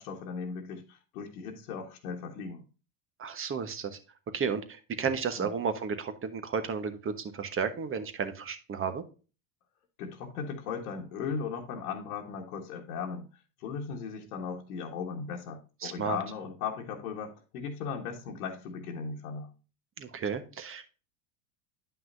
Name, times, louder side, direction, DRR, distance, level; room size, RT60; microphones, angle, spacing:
voice 1, 0.0-2.6 5.4-5.5 10.0-13.3 13.6-19.5, left 6 dB, 85° left, 1.5 m, -37 dB
voice 2, 3.2-4.0 4.3-9.0 15.8-16.2 20.0-20.8, right 6 dB, 30° right, 1.2 m, -33 dB
9.8 x 5.8 x 2.6 m
supercardioid pair, 105°, 43 cm